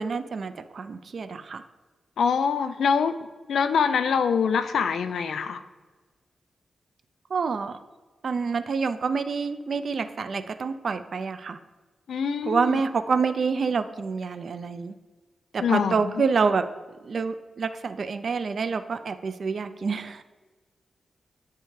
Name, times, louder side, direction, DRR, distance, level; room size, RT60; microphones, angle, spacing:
voice 1, 0.0-1.6 7.3-7.8 8.2-11.6 12.4-15.0 15.5-16.6 17.0-20.2, right 5 dB, 60° right, 11 dB, 0.3 m, -27 dB
voice 2, 2.2-3.2 3.5-5.6 12.1-12.8 15.6-16.1, left 6 dB, 85° left, 10 dB, 0.3 m, -24 dB
9.2 x 3.3 x 3.2 m, 1.3 s
cardioid pair, 90°, 0 cm